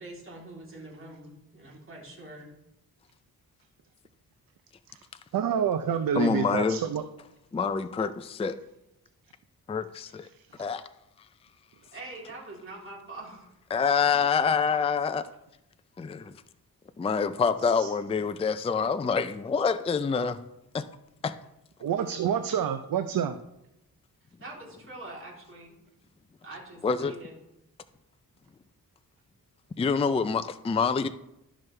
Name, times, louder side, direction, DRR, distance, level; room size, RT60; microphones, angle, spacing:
voice 1, 0.0-2.5 11.9-13.5 24.4-25.8 26.4-27.3, right 2 dB, 35° right, -4 dB, 3.2 m, -44 dB
voice 2, 5.3-7.0 10.5-10.7 17.8-17.9 21.8-23.4, right 8 dB, 65° right, 8 dB, 0.6 m, -28 dB
voice 3, 6.1-6.8 7.5-8.6 9.7-10.3 10.6-10.8 13.7-15.3 16.0-16.4 17.0-20.4 20.7-20.8 21.2-21.3 26.8-27.1 29.8-31.1, left 5 dB, 15° left, 11 dB, 0.4 m, -26 dB
12.5 x 6.2 x 3.3 m, 0.85 s
wide cardioid pair, 100°, 36 cm